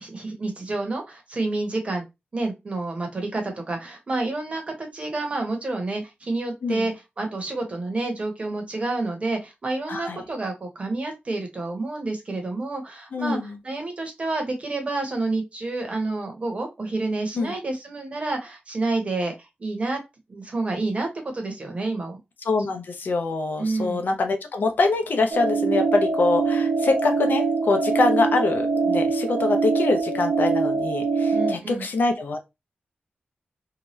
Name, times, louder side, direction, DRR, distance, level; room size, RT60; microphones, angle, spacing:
voice 1, 0.0-2.0 2.3-20.0 20.3-22.2 23.6-24.0 31.3-31.8, right 2 dB, 35° right, 0.9 m, -29 dB
voice 2, 9.9-10.2 13.1-13.6 17.4-17.5 22.4-32.5, left 3 dB, 65° left, 0.6 m, -24 dB
sound 1, 25.3-31.5, right 4 dB, 70° right, 0.8 m, -23 dB
2.8 x 2.3 x 3.0 m
wide cardioid pair, 150°, 3 cm